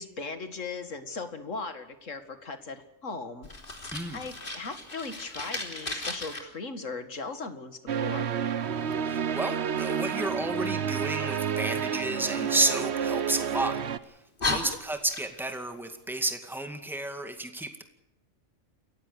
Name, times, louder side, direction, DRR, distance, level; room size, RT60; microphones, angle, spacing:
voice 1, 0.0-3.5 4.1-8.3 14.5-14.8, left 4 dB, 90° left, 9 dB, 2.4 m, -38 dB
Fire, 3.4-6.4 12.3-13.6 14.0-14.1 14.4-15.6, left 2 dB, 45° left, 3.4 m, -35 dB
sound 1, 7.9-14.0, right 7 dB, 60° right, 1.2 m, -30 dB
voice 2, 9.0-13.8 14.4-17.8, right 2 dB, ahead, 6 dB, 2.1 m, -31 dB
28.5 x 15.0 x 6.6 m, 0.89 s
omnidirectional pair, 1.3 m